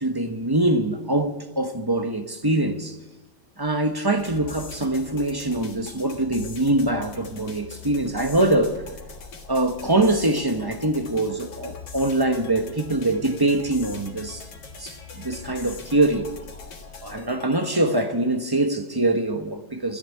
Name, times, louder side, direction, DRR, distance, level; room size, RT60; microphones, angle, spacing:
voice 1, 0.0-3.0 3.6-8.8 9.5-14.4 14.8-16.3 17.0-20.0, right 2 dB, 15° right, 0.9 m, -23 dB
sound 1, 4.2-18.2, left 5 dB, 90° left, 2.3 m, -42 dB
14.0 x 10.0 x 9.4 m
omnidirectional pair, 1.8 m